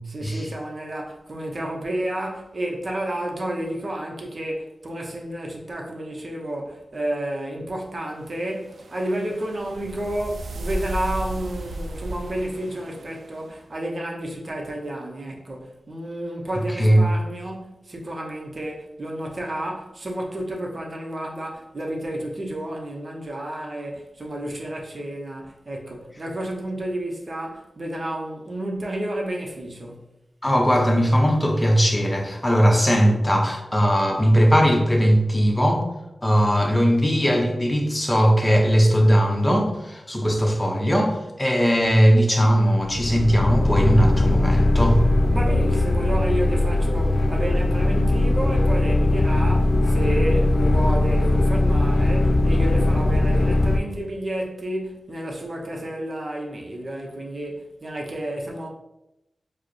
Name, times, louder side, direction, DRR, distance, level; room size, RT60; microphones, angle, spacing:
voice 1, 0.1-30.1 45.3-58.7, right 1 dB, 45° right, 0.7 m, -31 dB
sound 1, 8.2-13.5, right 1 dB, 80° right, 0.3 m, -34 dB
voice 2, 30.4-35.8 36.2-45.0, equal, 15° left, 0.7 m, -19 dB
sound 2, 42.8-53.8, left 2 dB, 55° left, 0.3 m, -20 dB
4.6 x 2.0 x 3.1 m
wide cardioid pair, 85°, 0 cm